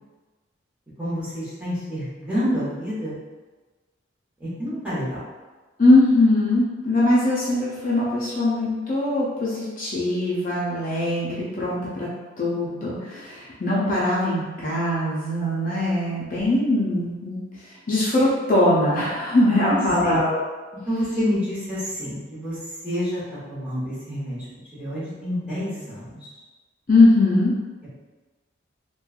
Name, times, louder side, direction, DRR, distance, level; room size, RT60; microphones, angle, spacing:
voice 1, 1.0-3.1 4.4-5.2 19.7-20.2 20.9-22.6 22.8-24.4 24.7-26.2, equal, 5° right, -12 dB, 1.0 m, -28 dB
voice 2, 5.8-12.1 12.4-17.4 17.9-20.4 26.9-27.5, left 2 dB, 40° left, -7 dB, 0.5 m, -21 dB
3.1 x 2.2 x 2.3 m, 1.3 s
head